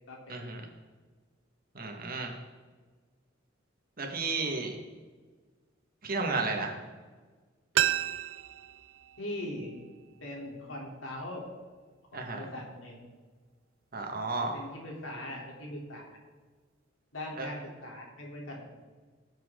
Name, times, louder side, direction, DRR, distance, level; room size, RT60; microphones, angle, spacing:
voice 1, 0.3-0.7 1.8-2.3 4.0-4.7 6.0-6.7 12.1-12.4 13.9-14.6 17.4-17.5, right 3 dB, 50° right, 2 dB, 1.9 m, -32 dB
sound 1, 7.7-10.5 10.8-10.9, right 12 dB, 80° right, 0.5 m, -33 dB
voice 2, 9.2-9.8 10.2-11.5 12.1-13.0 14.4-16.1 17.1-18.6, left 1 dB, 75° left, -2 dB, 3.6 m, -40 dB
19.5 x 7.7 x 3.9 m, 1.4 s
head